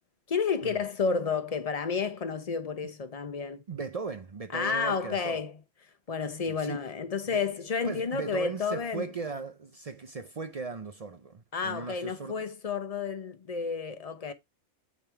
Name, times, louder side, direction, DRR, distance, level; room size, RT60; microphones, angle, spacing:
voice 1, 0.3-3.6 4.5-5.6 6.1-9.1 11.5-14.3, left 5 dB, 35° left, 0.7 m, -31 dB
voice 2, 3.7-5.4 6.6-6.8 7.3-7.5 7.8-12.5, right 4 dB, 55° right, 0.4 m, -38 dB
9.2 x 3.6 x 4.5 m
omnidirectional pair, 1.5 m